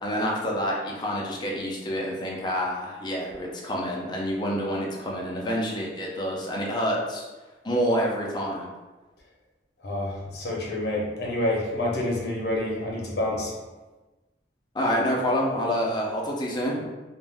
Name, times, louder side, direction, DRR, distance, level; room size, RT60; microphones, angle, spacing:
voice 1, 0.0-7.3 7.6-8.7 14.7-16.9, equal, 25° left, -2 dB, 0.5 m, -27 dB
voice 2, 9.8-13.6, left 1 dB, 65° left, -2 dB, 0.7 m, -28 dB
2.5 x 2.1 x 3.3 m, 1.2 s
head